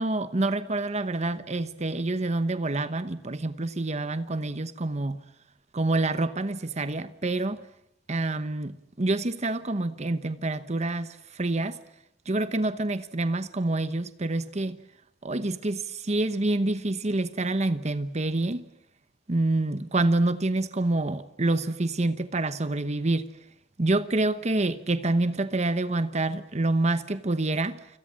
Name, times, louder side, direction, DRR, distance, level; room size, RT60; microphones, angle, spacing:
voice 1, 0.0-5.2 5.7-7.6 8.1-11.8 12.3-14.8 15.2-18.6 19.3-23.3 23.8-27.9, right 2 dB, 40° right, 1.0 m, -27 dB
30.0 x 26.0 x 7.5 m
head